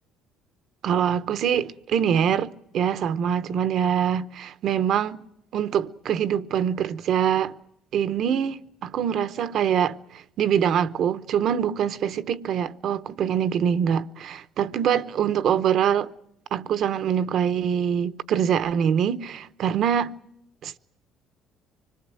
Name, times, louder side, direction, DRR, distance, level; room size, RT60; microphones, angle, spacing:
voice 1, 0.8-5.2 5.5-7.6 7.9-16.1 16.5-20.2 20.6-20.8, right 8 dB, 60° right, 0.9 m, -24 dB
25.0 x 20.5 x 7.7 m
supercardioid pair, 90°, 0 cm